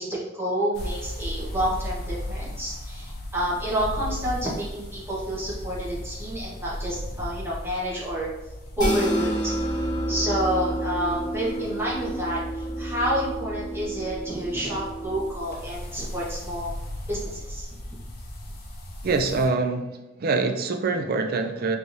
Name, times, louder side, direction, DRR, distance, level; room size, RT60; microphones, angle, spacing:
voice 1, 0.0-8.3 8.8-16.7 17.1-17.7, right 1 dB, 10° right, -7 dB, 1.2 m, -29 dB
sound 1, 0.7-19.5, left 1 dB, 50° left, 0.8 m, -37 dB
sound 2, 8.8-15.2, right 1 dB, 20° left, 1.2 m, -30 dB
voice 2, 19.0-19.9 20.2-21.8, right 3 dB, 50° right, 6 dB, 0.4 m, -24 dB
4.6 x 3.2 x 2.7 m, 1.0 s
head